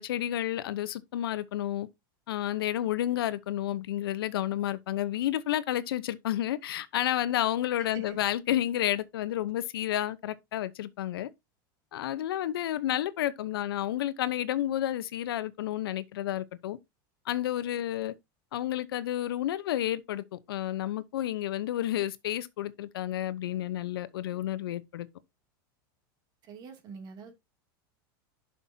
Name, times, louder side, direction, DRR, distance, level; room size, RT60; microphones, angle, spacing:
voice 1, 0.0-1.9 2.3-11.3 11.9-16.8 17.3-18.1 18.5-25.1, left 12 dB, 85° left, 0.9 m, -31 dB
voice 2, 26.4-27.3, right 5 dB, 35° right, 2.6 m, -45 dB
11.0 x 6.0 x 2.8 m
supercardioid pair, 145°, 12 cm